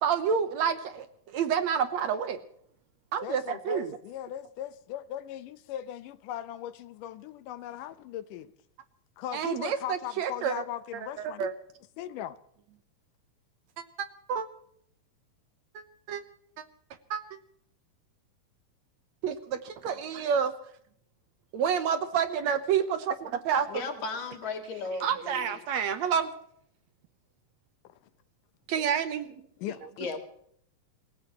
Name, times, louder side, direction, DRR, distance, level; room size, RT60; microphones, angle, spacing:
voice 1, 0.0-2.4 3.1-4.0 9.3-10.5 11.2-11.5 13.8-14.5 15.8-16.2 16.6-16.7 17.1-17.2 19.2-20.5 21.5-23.7 25.0-26.3 28.7-29.3, right 7 dB, 70° right, 2.0 m, -29 dB
voice 2, 3.2-8.5 9.2-11.5 12.0-12.4 27.8-27.9 29.6-29.8, left 12 dB, 85° left, 2.4 m, -38 dB
voice 3, 23.7-25.6 29.6-30.2, left 4 dB, 65° left, 3.5 m, -36 dB
27.0 x 16.0 x 3.0 m
omnidirectional pair, 3.7 m